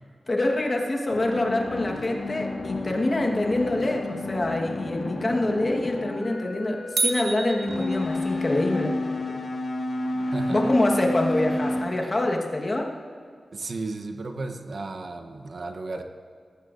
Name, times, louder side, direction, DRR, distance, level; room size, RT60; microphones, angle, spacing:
voice 1, 0.3-9.0 9.3-9.4 10.5-12.9, left 1 dB, 30° left, 1 dB, 1.2 m, -26 dB
sound 1, 1.1-11.8, left 2 dB, 55° left, 1.5 m, -31 dB
sound 2, 7.0-8.6, right 3 dB, 75° right, 1.4 m, -29 dB
voice 2, 10.3-10.7 13.5-16.0, right 3 dB, 50° right, 5 dB, 0.8 m, -34 dB
18.5 x 14.0 x 2.5 m, 2.2 s
wide cardioid pair, 160°, 0 cm